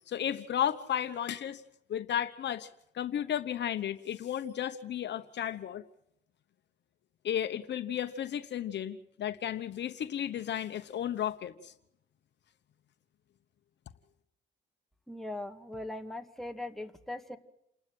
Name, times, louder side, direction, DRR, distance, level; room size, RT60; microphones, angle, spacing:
voice 1, 0.1-1.6 1.9-2.7 2.9-5.8 7.2-11.7, left 10 dB, 60° left, 10 dB, 1.1 m, -33 dB
voice 2, 15.1-17.4, left 1 dB, ahead, 4 dB, 2.0 m, -40 dB
29.0 x 12.5 x 7.8 m, 0.79 s
cardioid pair, 90°, 20 cm